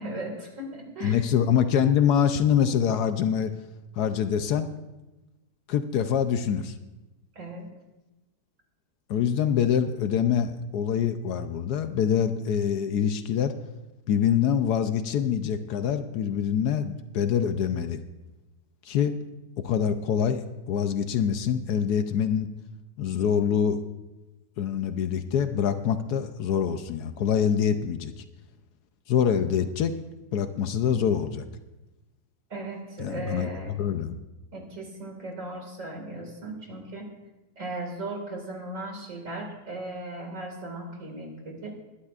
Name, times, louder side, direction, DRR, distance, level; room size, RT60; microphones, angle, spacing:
voice 1, 0.0-1.2 7.4-7.7 32.5-33.8 34.5-37.1 37.6-41.7, right 2 dB, 50° right, 2 dB, 2.4 m, -37 dB
voice 2, 1.0-3.5 4.0-4.7 5.7-6.7 9.1-13.5 14.1-18.0 18.8-19.2 19.6-22.5 23.0-23.8 24.6-28.1 29.1-30.0 30.3-31.5 33.0-34.2, left 8 dB, 70° left, 9 dB, 1.1 m, -25 dB
21.5 x 11.5 x 2.4 m, 1.0 s
omnidirectional pair, 1.8 m